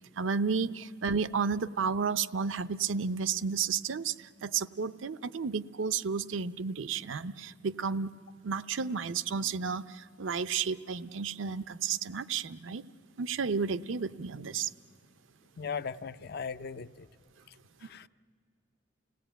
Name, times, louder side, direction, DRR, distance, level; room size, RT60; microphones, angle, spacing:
voice 1, 0.2-8.1 8.4-12.8 13.2-14.7, right 5 dB, 80° right, 0.6 m, -32 dB
voice 2, 15.6-17.1 17.8-18.1, left 5 dB, 55° left, 0.5 m, -38 dB
29.0 x 17.0 x 9.0 m
head